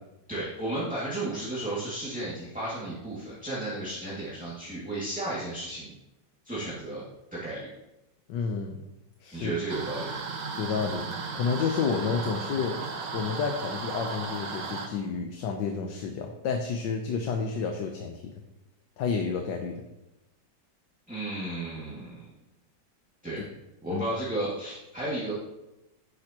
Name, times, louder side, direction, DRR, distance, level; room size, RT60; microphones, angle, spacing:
voice 1, 0.3-5.9 6.4-7.0 7.3-7.7 9.3-10.1 21.1-22.3 23.2-23.4 23.8-25.3, right 1 dB, 5° right, -9 dB, 2.2 m, -33 dB
voice 2, 8.3-8.8 9.2-9.5 10.6-11.1 11.3-12.8 13.1-18.3 19.0-19.8 23.9-24.0, left 5 dB, 75° left, 3 dB, 1.5 m, -30 dB
sound 1, 9.7-14.9, right 4 dB, 70° right, 1.7 m, -35 dB
11.0 x 9.7 x 3.0 m, 0.96 s
omnidirectional pair, 2.0 m